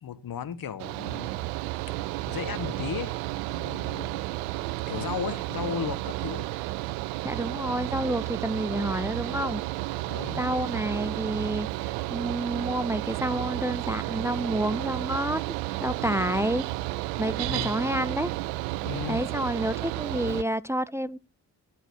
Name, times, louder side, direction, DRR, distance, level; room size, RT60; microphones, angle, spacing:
voice 1, 0.0-1.3 2.3-3.1 3.4-4.2 4.9-6.5 10.1-10.4 17.5-17.8 18.8-19.2, left 8 dB, 45° left, 1.5 m, -35 dB
Mechanical fan, 0.8-20.4, right 18 dB, 70° right, 0.6 m, -32 dB
voice 2, 7.2-9.6 10.4-15.4 15.8-16.7 17.2-18.3 19.1-21.2, right 1 dB, 5° right, 0.4 m, -29 dB
13.0 x 4.6 x 6.6 m
figure-of-eight pair, 45°, 48 cm